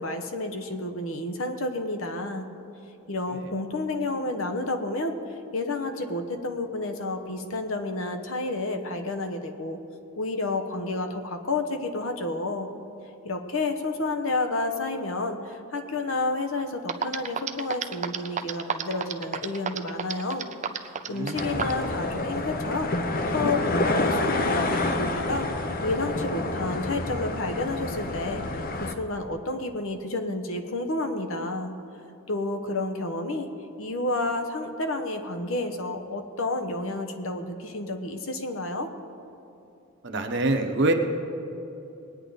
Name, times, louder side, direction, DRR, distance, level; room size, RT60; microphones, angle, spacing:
voice 1, 0.0-2.5 3.1-9.8 10.2-12.7 13.2-20.5 20.8-22.9 23.3-25.5 25.8-28.4 28.8-31.7 32.3-33.5 33.8-38.9, left 2 dB, 65° left, 6 dB, 1.0 m, -30 dB
sound 1, 16.6-16.7 16.9-21.8, right 7 dB, 35° right, 0.5 m, -29 dB
voice 2, 21.1-21.6 40.0-40.9, right 2 dB, 55° right, 4 dB, 1.0 m, -25 dB
sound 2, 21.3-28.9, left 2 dB, 40° left, 0.7 m, -28 dB
20.0 x 9.3 x 4.0 m, 2.9 s
head